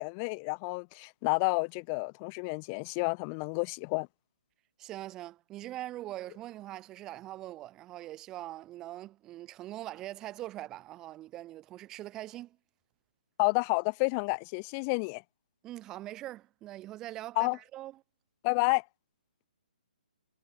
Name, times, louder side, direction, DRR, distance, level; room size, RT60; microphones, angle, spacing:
voice 1, 0.0-4.1 13.4-15.2 17.4-17.6 18.4-18.8, left 35 dB, 15° left, 0.4 m, -30 dB
voice 2, 4.8-12.6 15.6-18.0, right 15 dB, 10° right, 2.4 m, -42 dB
hypercardioid pair, 180°, 5 cm